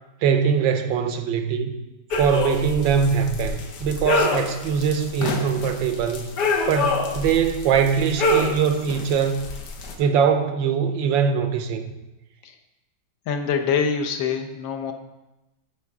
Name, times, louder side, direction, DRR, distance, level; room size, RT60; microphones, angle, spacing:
voice 1, 0.2-1.7 2.1-6.3 6.7-9.5 10.0-11.9, right 7 dB, 85° right, 1.5 m, -22 dB
sound 1, 2.1-9.9, left 2 dB, 65° left, 1.5 m, -27 dB
voice 2, 13.3-14.9, left 6 dB, 85° left, 1.6 m, -24 dB
11.0 x 6.7 x 3.6 m
omnidirectional pair, 2.0 m